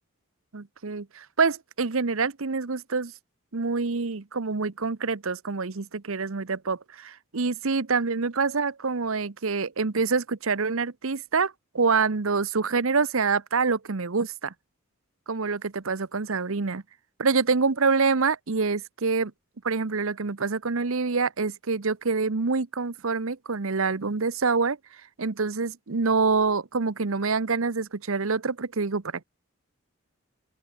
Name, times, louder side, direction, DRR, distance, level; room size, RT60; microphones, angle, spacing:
voice 1, 0.5-3.1 3.5-14.5 15.3-16.8 17.2-19.3 19.6-24.8 25.2-29.2, right 4 dB, 70° right, 0.9 m, -26 dB
open air
head